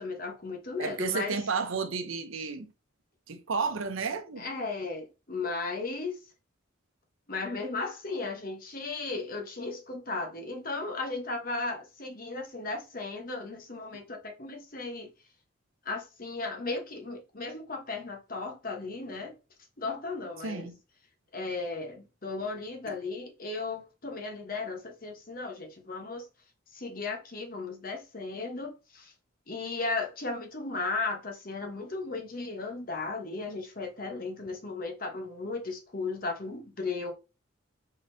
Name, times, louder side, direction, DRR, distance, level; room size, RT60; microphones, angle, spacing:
voice 1, 0.0-1.4 4.4-6.2 7.3-15.1 15.8-19.3 19.8-20.7 21.3-26.3 26.7-29.1 29.5-37.1, left 3 dB, 45° left, 1.0 m, -35 dB
voice 2, 0.8-2.7 3.3-4.5 20.4-20.7 22.9-23.0, right 5 dB, 80° right, 0.7 m, -32 dB
5.2 x 3.8 x 2.7 m
head